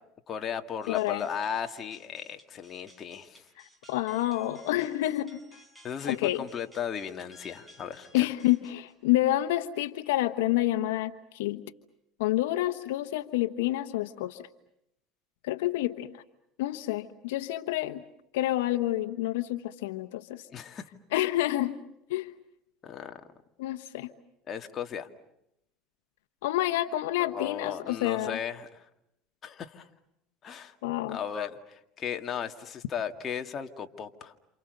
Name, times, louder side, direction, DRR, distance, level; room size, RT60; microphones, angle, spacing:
voice 1, 0.3-3.5 5.8-8.3 20.5-20.9 22.8-23.2 24.5-25.1 27.2-28.9 29.4-29.9 30.4-30.8 31.1-34.3, left 8 dB, 35° left, 6 dB, 2.1 m, -36 dB
sound 1, 0.8-9.1, equal, 5° right, 6.3 m, -57 dB
voice 2, 0.9-1.2 3.9-5.4 6.1-6.4 8.1-11.6 12.2-14.4 15.4-16.2 16.6-18.0 18.3-20.4 21.1-21.8 22.1-22.3 23.6-24.1 26.4-28.4 30.8-31.2, left 15 dB, 90° left, 11 dB, 1.1 m, -28 dB
28.5 x 28.5 x 6.7 m, 0.81 s
supercardioid pair, 115°, 0 cm